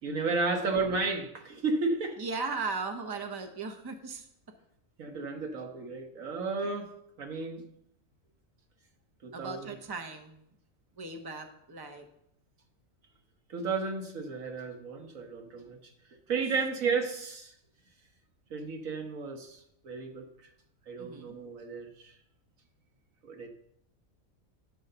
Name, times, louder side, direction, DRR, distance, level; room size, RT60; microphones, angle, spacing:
voice 1, 0.0-2.2 5.0-6.9 7.2-7.6 9.2-9.7 13.5-15.8 16.3-17.5 18.5-20.3 20.9-22.1 23.2-23.5, right 4 dB, 85° right, 3 dB, 1.6 m, -33 dB
voice 2, 2.2-4.3 6.6-6.7 9.3-10.4 11.0-12.1 16.4-16.5 21.0-21.4, right 4 dB, 20° right, 5 dB, 0.7 m, -37 dB
10.5 x 3.9 x 6.7 m, 0.73 s
omnidirectional pair, 1.4 m